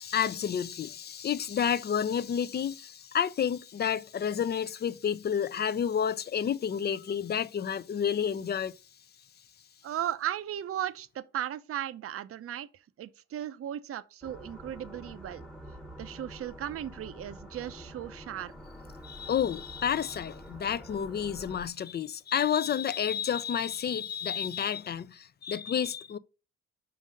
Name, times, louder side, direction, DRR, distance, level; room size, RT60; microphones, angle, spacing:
voice 1, 0.0-8.7 19.0-26.2, left 8 dB, 35° left, 0.4 m, -30 dB
voice 2, 9.8-12.7 13.0-15.4 16.0-18.5, right 11 dB, 50° right, 0.5 m, -36 dB
sound 1, 14.2-21.7, equal, ahead, 0.9 m, -47 dB
5.3 x 3.9 x 5.0 m
cardioid pair, 90°, 30 cm